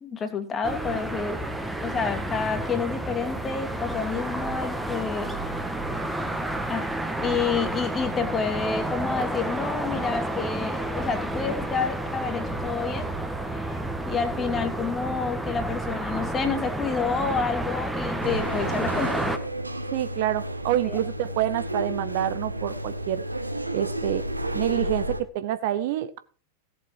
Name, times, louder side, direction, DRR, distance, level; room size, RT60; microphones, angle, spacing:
voice 1, 0.0-1.4 1.8-5.6 6.7-6.8 7.2-13.1 13.5-19.2 20.8-21.0, left 5 dB, 20° left, 7 dB, 2.3 m, -29 dB
sound 1, 0.6-19.4, right 1 dB, 5° right, 1.5 m, -30 dB
sound 2, 18.2-25.2, right 1 dB, 85° right, 1.1 m, -32 dB
voice 2, 19.9-23.2 23.7-24.2 24.5-26.2, right 12 dB, 50° right, 14 dB, 0.9 m, -27 dB
17.0 x 7.7 x 4.7 m, 0.39 s
figure-of-eight pair, 90°, 0 cm